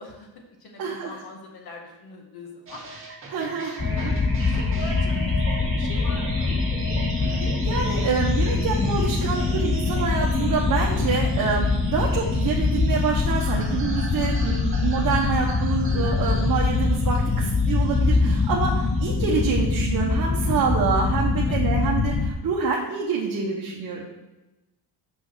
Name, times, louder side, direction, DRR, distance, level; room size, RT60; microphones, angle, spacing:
voice 1, 0.0-2.8 3.8-6.5 17.3-17.5 21.4-21.6, left 2 dB, 55° left, 2 dB, 1.8 m, -42 dB
voice 2, 0.8-1.1 3.3-3.7 4.0-4.2 7.2-24.1, right 5 dB, 50° right, -3 dB, 1.2 m, -27 dB
sound 1, 2.7-19.6, right 2 dB, 30° right, 2.3 m, -37 dB
sound 2, 3.8-22.3, left 4 dB, 10° left, 0.4 m, -23 dB
6.1 x 5.5 x 6.2 m, 1.0 s
cardioid pair, 135°, 44 cm